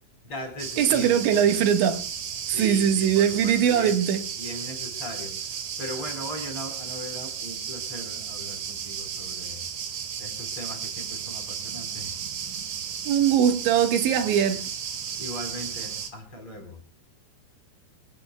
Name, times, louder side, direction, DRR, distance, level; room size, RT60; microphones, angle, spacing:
voice 1, 0.2-1.5 2.5-4.0 4.4-9.6 10.2-12.1 15.2-16.8, equal, 30° left, 4.7 m, -38 dB
sound 1, 0.6-16.1, right 7 dB, 55° right, 2.8 m, -34 dB
voice 2, 0.8-2.0 2.5-4.2 13.1-14.6, right 9 dB, 80° right, 3.8 m, -21 dB
26.5 x 16.5 x 2.3 m
omnidirectional pair, 5.2 m